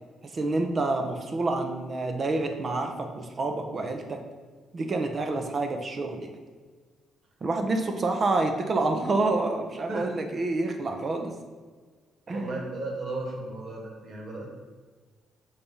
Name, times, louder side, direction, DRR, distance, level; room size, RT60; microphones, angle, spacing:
voice 1, 0.2-4.2 4.7-6.3 7.4-11.3 12.3-12.6, right 2 dB, 40° right, 5 dB, 0.8 m, -28 dB
voice 2, 12.3-14.5, right 2 dB, 60° right, -1 dB, 1.8 m, -35 dB
5.6 x 3.3 x 5.5 m, 1.5 s
cardioid pair, 90°, 0 cm